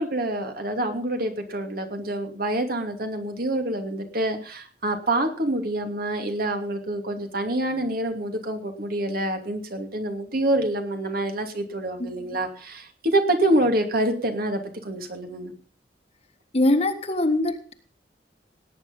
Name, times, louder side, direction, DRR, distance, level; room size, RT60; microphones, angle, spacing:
voice 1, 0.0-15.5, right 1 dB, 55° right, 5 dB, 2.6 m, -26 dB
voice 2, 16.5-17.7, left 1 dB, 35° left, 8 dB, 1.5 m, -23 dB
18.0 x 9.3 x 5.4 m, 0.42 s
head